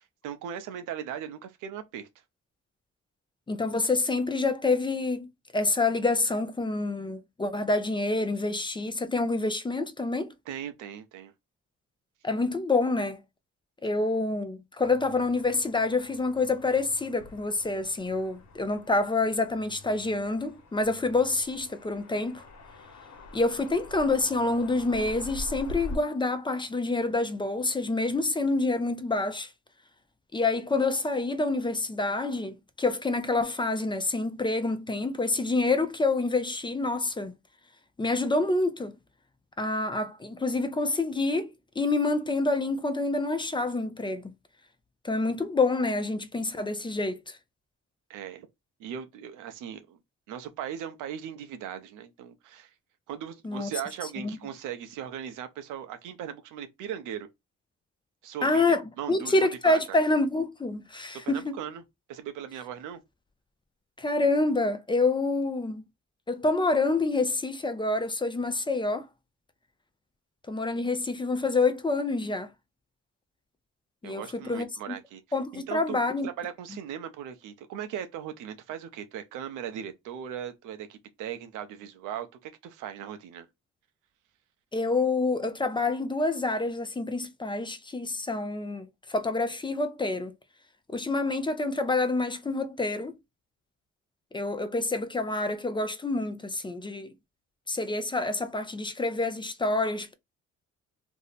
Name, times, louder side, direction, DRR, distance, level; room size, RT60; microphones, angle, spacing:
voice 1, 0.0-2.1 10.5-11.3 48.1-48.5 48.8-50.0 50.3-52.7 53.1-57.3 58.2-59.8 61.2-61.8 62.1-63.0 74.0-75.2 75.5-83.5, right 9 dB, 90° right, 0.6 m, -38 dB
voice 2, 3.5-10.3 12.2-13.2 13.8-22.5 23.3-29.5 30.3-37.3 38.0-39.0 39.6-44.3 45.0-47.4 53.4-53.7 54.2-54.4 58.4-61.6 64.0-65.8 66.3-69.1 70.5-72.5 74.0-75.0 75.3-76.3 84.7-90.3 90.9-93.2 94.3-97.1 97.7-100.1, left 3 dB, 15° left, 0.4 m, -27 dB
sound 1, 14.8-26.0, left 2 dB, 65° left, 1.0 m, -44 dB
2.6 x 2.1 x 3.9 m
cardioid pair, 90°, 30 cm